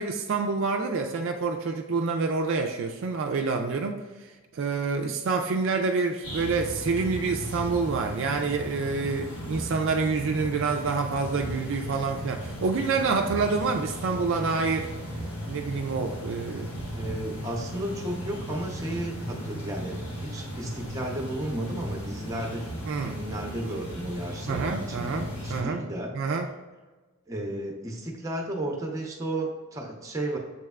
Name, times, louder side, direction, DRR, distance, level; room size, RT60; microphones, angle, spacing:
voice 1, 0.0-4.0 4.5-14.9 15.5-16.7 22.9-23.2 24.5-25.8 26.1-26.5, right 4 dB, 60° right, 4 dB, 0.3 m, -27 dB
sound 1, 6.2-25.6, equal, 80° left, 1.3 m, -36 dB
voice 2, 16.9-22.7 23.0-26.1 27.3-30.4, right 1 dB, 15° right, 0 dB, 0.7 m, -33 dB
7.0 x 3.2 x 2.3 m, 1.3 s
head